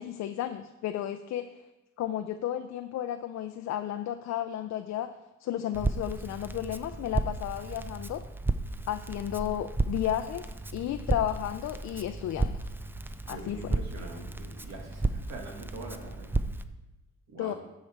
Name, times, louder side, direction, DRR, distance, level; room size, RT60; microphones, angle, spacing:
voice 1, 0.0-1.5 2.0-8.3 8.9-12.6 13.3-13.8 17.4-17.5, left 11 dB, 60° left, 9 dB, 0.5 m, -33 dB
Crackle, 5.7-16.6, right 2 dB, 5° right, 0.4 m, -33 dB
voice 2, 13.3-16.4 17.3-17.5, right 2 dB, 60° right, 1 dB, 2.0 m, -44 dB
11.5 x 4.8 x 4.4 m, 1.0 s
cardioid pair, 90°, 30 cm